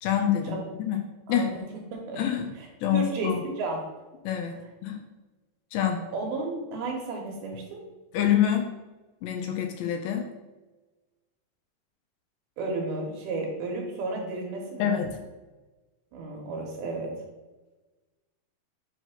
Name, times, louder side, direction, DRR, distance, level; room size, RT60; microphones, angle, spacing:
voice 1, 0.0-1.0 1.3-1.5 2.2-2.5 2.8-3.4 4.3-5.0 5.7-6.0 8.1-8.6 9.2-10.3 14.8-15.2, left 9 dB, 80° left, 4 dB, 2.7 m, -26 dB
voice 2, 1.3-1.6 1.9-2.2 2.6-2.7 2.9-3.8 4.4-4.6 6.1-7.8 12.6-15.0 16.1-17.1, right 2 dB, 70° right, 0 dB, 2.6 m, -33 dB
7.9 x 2.9 x 5.8 m, 1.2 s
omnidirectional pair, 5.2 m